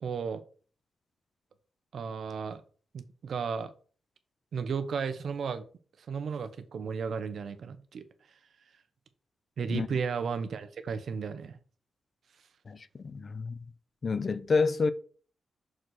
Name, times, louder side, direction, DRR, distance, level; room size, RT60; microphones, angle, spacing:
voice 1, 0.0-0.4 1.9-2.6 2.9-3.7 4.5-5.6 6.1-8.0 9.6-11.6, right 6 dB, 65° right, 0.9 m, -34 dB
voice 2, 12.7-13.6 14.0-14.9, left 4 dB, 40° left, 0.6 m, -29 dB
6.4 x 4.1 x 6.4 m
cardioid pair, 110°, 0 cm